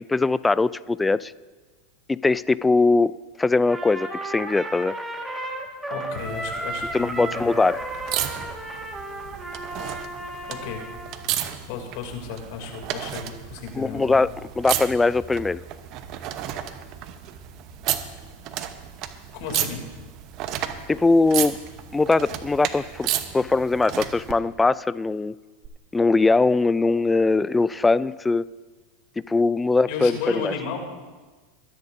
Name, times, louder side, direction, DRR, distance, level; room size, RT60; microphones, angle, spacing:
voice 1, 0.0-1.3 2.1-4.9 6.9-7.8 13.8-15.6 20.9-21.6 21.9-25.3 25.9-28.5 29.3-30.5, left 3 dB, 10° left, 18 dB, 0.3 m, -21 dB
Trumpet, 3.7-11.2, right 1 dB, 10° right, 1.8 m, -33 dB
voice 2, 5.9-7.5 10.5-10.9 11.7-14.2 19.3-19.8 29.9-30.8, left 6 dB, 60° left, 3 dB, 2.9 m, -33 dB
sound 1, 6.2-24.3 25.6-25.7, right 11 dB, 50° right, 1.0 m, -33 dB
21.5 x 10.5 x 2.7 m, 1.3 s
hypercardioid pair, 100°, 0 cm